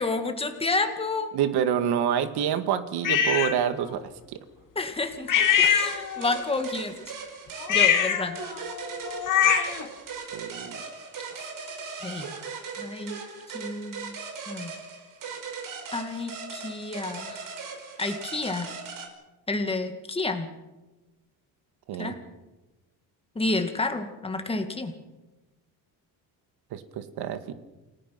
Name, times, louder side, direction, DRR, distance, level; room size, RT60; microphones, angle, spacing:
voice 1, 0.0-1.3 4.8-5.3 5.6-6.9 7.7-8.4 12.0-12.3 12.8-13.2 13.5-14.1 14.5-14.7 15.9-17.4 18.0-18.7 19.5-20.5 22.0-22.2 23.4-24.9, left 3 dB, 15° left, 6 dB, 2.3 m, -30 dB
voice 2, 1.3-4.4 10.3-10.8 11.3-11.4 21.9-22.1 26.7-27.5, right 9 dB, 75° right, 9 dB, 2.0 m, -27 dB
sound 1, 3.0-3.6 5.3-6.4 7.6-9.9, left 8 dB, 50° left, 2.4 m, -23 dB
sound 2, 5.4-19.1, right 5 dB, 55° right, 5.3 m, -39 dB
29.0 x 19.0 x 6.0 m, 1.1 s
cardioid pair, 150°, 39 cm